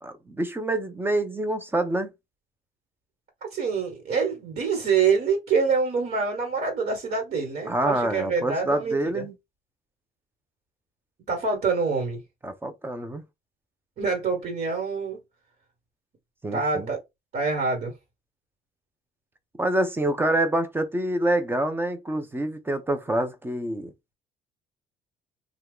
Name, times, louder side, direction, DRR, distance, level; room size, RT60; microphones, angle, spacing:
voice 1, 0.0-2.1 7.7-9.4 12.4-13.2 16.4-16.9 19.6-23.9, right 1 dB, 15° right, 0.7 m, -26 dB
voice 2, 3.5-9.2 11.3-12.2 14.0-15.2 16.5-17.0 17.3-17.9, right 5 dB, 50° right, 1.6 m, -26 dB
2.8 x 2.4 x 3.5 m
cardioid pair, 110°, 17 cm